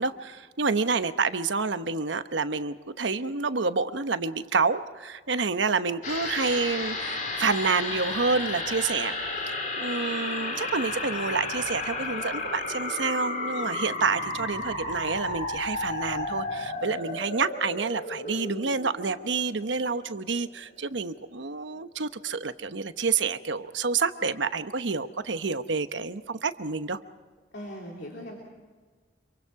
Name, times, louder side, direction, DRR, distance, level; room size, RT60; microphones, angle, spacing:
voice 1, 0.0-9.1 9.5-27.0, right 4 dB, 85° right, 10 dB, 1.0 m, -28 dB
sound 1, 6.0-20.7 21.0-21.1, left 2 dB, 45° left, 4.1 m, -33 dB
voice 2, 27.5-28.4, equal, 65° left, -2 dB, 3.3 m, -39 dB
26.5 x 24.0 x 4.8 m, 1.4 s
head